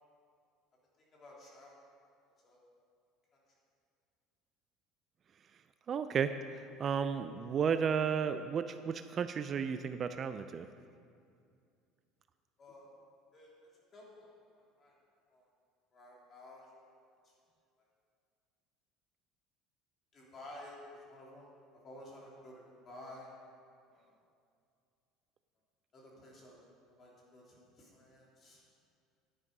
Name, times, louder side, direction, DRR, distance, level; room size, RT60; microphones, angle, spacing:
voice 1, 1.0-1.8 2.4-2.6 3.3-3.4 12.6-12.9 13.3-13.5 13.9-14.9 15.3-15.5 15.9-16.7 17.2-17.3 20.1-23.3 23.9-24.2 25.9-28.6, left 1 dB, 35° left, -4 dB, 3.2 m, -53 dB
voice 2, 5.9-6.4 6.8-10.7, right 7 dB, 35° right, 10 dB, 0.4 m, -33 dB
10.5 x 9.8 x 5.4 m, 2.4 s
cardioid pair, 130°, 0 cm